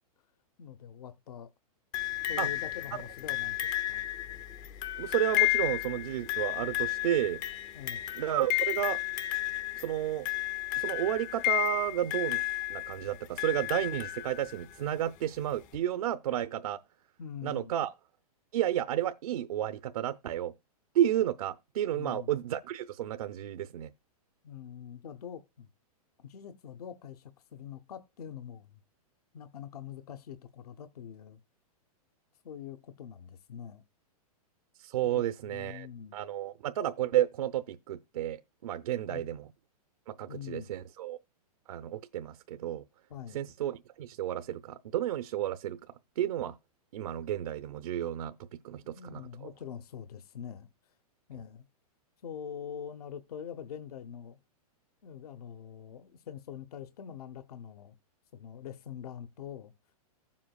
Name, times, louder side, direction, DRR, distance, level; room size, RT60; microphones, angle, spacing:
voice 1, 0.6-1.5 2.3-4.1 7.7-8.1 17.2-17.7 21.9-22.3 24.4-25.7 26.2-28.8 29.3-31.4 32.4-33.8 35.0-36.2 39.1-39.3 40.3-40.7 43.1-43.5 48.9-50.7 51.3-51.7 52.2-54.4 55.0-58.0 58.3-59.7, left 8 dB, 75° left, 0.9 m, -44 dB
sound 1, 1.9-14.8 15.7-15.8, left 18 dB, 20° left, 0.5 m, -33 dB
voice 2, 5.0-7.4 8.2-9.0 9.8-10.3 10.8-12.4 12.7-16.8 17.4-17.9 18.5-20.5 20.9-23.9 34.8-35.9 36.1-39.5 40.1-41.2 41.7-42.8 43.3-45.8 46.2-46.5 46.9-48.3 48.6-49.2, right 12 dB, 70° right, 0.7 m, -32 dB
15.0 x 7.4 x 2.3 m
hypercardioid pair, 165°, 19 cm